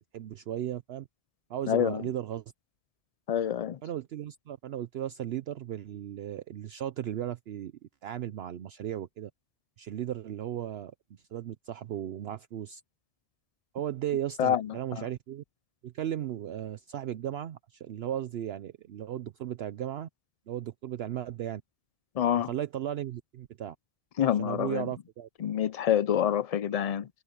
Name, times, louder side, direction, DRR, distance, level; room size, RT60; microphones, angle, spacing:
voice 1, 0.1-1.1 1.5-2.4 3.8-7.7 8.0-9.3 9.8-12.8 13.7-15.4 15.8-20.1 20.5-21.6 22.3-23.8 24.4-25.3, right 11 dB, 65° right, 0.8 m, -36 dB
voice 2, 1.7-2.0 3.3-3.8 14.4-14.7 14.9-15.0 22.2-22.5 24.2-24.9 25.4-27.1, left 9 dB, 75° left, 0.3 m, -27 dB
omnidirectional pair, 1.2 m